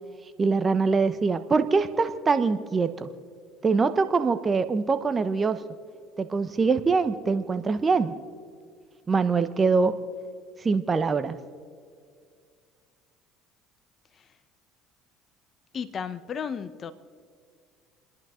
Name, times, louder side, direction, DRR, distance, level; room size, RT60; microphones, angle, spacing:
voice 1, 0.4-3.1 3.6-5.6 6.2-8.1 9.1-9.9 10.6-11.4, right 4 dB, 30° right, 1.0 m, -23 dB
voice 2, 15.7-16.9, left 7 dB, 45° left, 1.0 m, -34 dB
29.5 x 10.5 x 3.8 m
hypercardioid pair, 75°, 0 cm